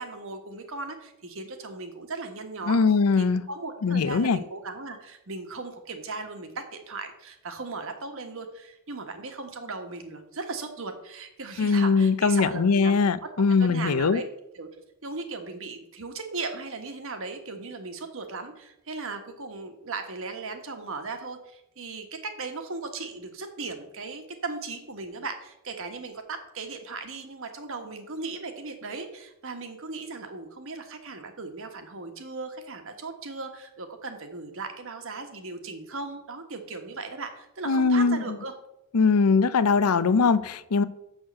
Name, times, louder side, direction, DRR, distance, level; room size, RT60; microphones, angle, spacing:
voice 1, 0.0-2.8 3.2-13.3 13.6-14.3 14.5-14.7 15.0-38.5, right 3 dB, 65° right, 6 dB, 1.3 m, -37 dB
voice 2, 2.7-3.4 3.8-4.4 11.6-14.2 37.6-38.4 38.9-40.8, left 4 dB, 85° left, 16 dB, 0.6 m, -21 dB
6.4 x 6.4 x 7.3 m, 0.87 s
head